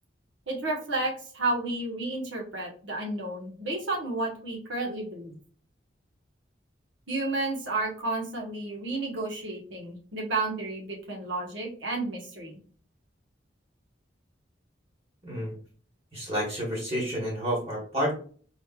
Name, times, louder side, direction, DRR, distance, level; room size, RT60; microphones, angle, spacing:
voice 1, 0.5-5.4 7.1-12.6, right 2 dB, 80° right, -1 dB, 1.2 m, -31 dB
voice 2, 15.2-15.5 16.1-18.1, equal, 30° right, -4 dB, 1.3 m, -30 dB
4.2 x 3.1 x 2.3 m, 0.44 s
head